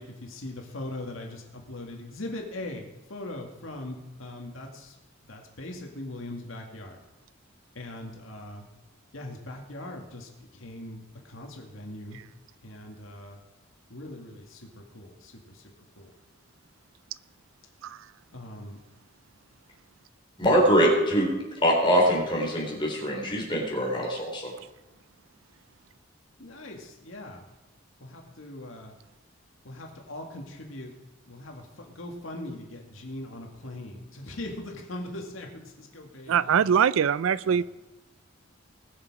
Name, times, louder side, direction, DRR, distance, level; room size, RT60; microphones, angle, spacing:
voice 1, 0.0-5.0 5.3-7.0 7.8-8.7 9.1-12.2 12.6-13.4 13.9-15.6 16.0-16.1 18.3-18.8 20.5-20.7 26.4-27.4 28.0-28.9 29.6-30.9 31.3-36.6 37.4-37.6, left 1 dB, 85° left, 2 dB, 2.1 m, -40 dB
voice 2, 20.4-21.3 21.6-24.5, equal, 25° left, -2 dB, 3.7 m, -23 dB
voice 3, 36.3-37.6, right 7 dB, 85° right, 19 dB, 0.4 m, -22 dB
20.0 x 6.9 x 4.9 m, 1.0 s
head